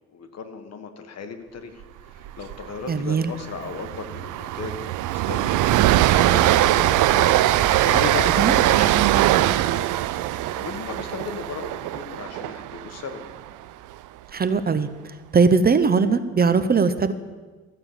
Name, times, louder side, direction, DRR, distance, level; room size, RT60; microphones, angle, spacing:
voice 1, 0.1-4.7 5.0-9.8 10.5-13.2, left 5 dB, 55° left, 7 dB, 1.5 m, -36 dB
Train, 2.3-2.5 2.8-3.0 3.3-13.5, right 14 dB, 85° right, 0.5 m, -21 dB
voice 2, 2.9-3.3 8.4-8.5 14.3-14.9 15.3-17.1, right 5 dB, 30° right, 12 dB, 0.6 m, -19 dB
14.0 x 6.7 x 7.4 m, 1.4 s
cardioid pair, 90°, 30 cm